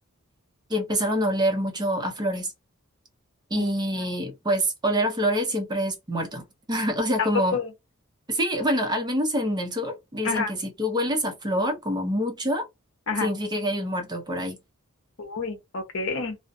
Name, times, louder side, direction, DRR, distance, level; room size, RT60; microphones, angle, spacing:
voice 1, 0.7-2.5 3.5-7.6 8.3-12.7 13.2-14.6, equal, 20° right, 0.6 m, -26 dB
voice 2, 3.6-4.1 7.2-7.7 10.2-10.5 13.1-13.3 15.2-16.4, left 5 dB, 65° left, 0.8 m, -29 dB
2.4 x 2.1 x 2.6 m
head